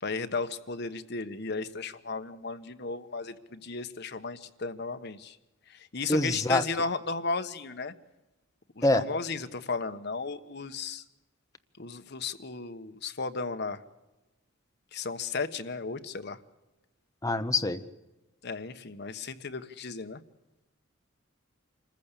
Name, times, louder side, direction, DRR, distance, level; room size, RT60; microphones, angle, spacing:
voice 1, 0.0-5.4 5.7-7.9 8.8-11.0 11.8-13.8 14.9-16.4 18.4-20.2, left 4 dB, 55° left, 9 dB, 1.2 m, -35 dB
voice 2, 6.1-6.6 8.8-9.0 17.2-17.8, left 2 dB, 15° left, 8 dB, 1.0 m, -25 dB
26.0 x 14.5 x 8.3 m, 1.0 s
head